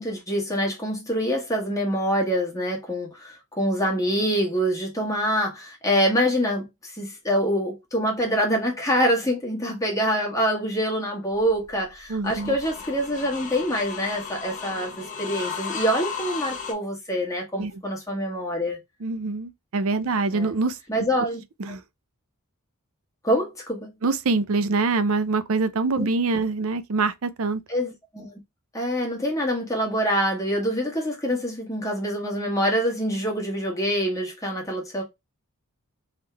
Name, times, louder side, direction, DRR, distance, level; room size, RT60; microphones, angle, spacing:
voice 1, 0.0-18.8 20.3-20.5 20.9-21.4 23.2-23.9 26.0-26.1 27.7-28.3 28.7-35.0, equal, 15° left, 1.6 m, -25 dB
sound 1, 11.4-16.7, left 6 dB, 35° left, 1.0 m, -35 dB
voice 2, 12.1-12.6 17.6-17.7 19.0-20.8 21.6-21.8 24.0-27.6, right 3 dB, 65° right, 0.5 m, -24 dB
3.6 x 3.2 x 3.3 m
head